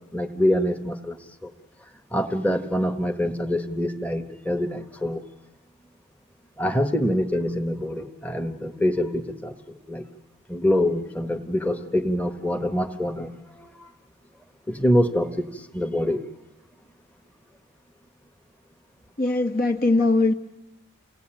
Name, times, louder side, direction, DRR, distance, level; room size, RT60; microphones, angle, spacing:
voice 1, 0.1-1.2 1.4-1.5 2.1-5.2 6.6-9.5 9.9-10.1 10.5-13.3 13.6-13.9 14.7-16.2, left 1 dB, 5° left, 6 dB, 1.2 m, -25 dB
voice 2, 19.2-20.3, left 2 dB, 40° left, 6 dB, 1.0 m, -20 dB
29.0 x 18.0 x 9.0 m, 0.95 s
head